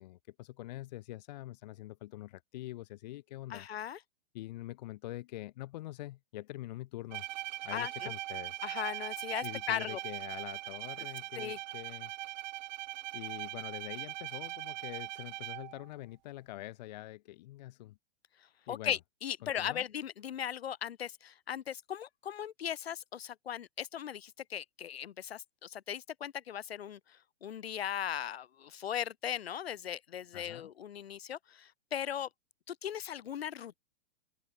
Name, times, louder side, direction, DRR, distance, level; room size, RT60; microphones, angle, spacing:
voice 1, 0.0-3.7 4.3-7.2 7.6-8.6 9.4-12.1 13.1-18.0 18.7-19.0 19.4-19.8 30.3-30.7, left 16 dB, 45° left, 1.3 m, -45 dB
voice 2, 3.5-4.0 7.7-8.1 8.6-10.0 11.4-11.6 18.7-32.3 32.7-33.8, left 9 dB, 80° left, 4.5 m, -38 dB
Bowed string instrument, 7.1-15.9, right 16 dB, 45° right, 3.0 m, -41 dB
open air
hypercardioid pair, 165°, 30 cm